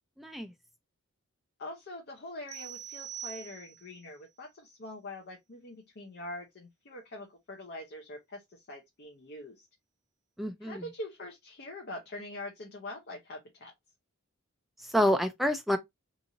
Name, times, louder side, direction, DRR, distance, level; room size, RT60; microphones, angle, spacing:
voice 1, 0.2-0.5 10.4-10.9 14.8-15.8, equal, ahead, 0.3 m, -28 dB
voice 2, 1.6-9.7 10.6-13.7, left 1 dB, 50° left, 0.6 m, -44 dB
sound 1, 2.5-4.0, right 10 dB, 75° right, 0.7 m, -43 dB
2.9 x 2.6 x 2.6 m
head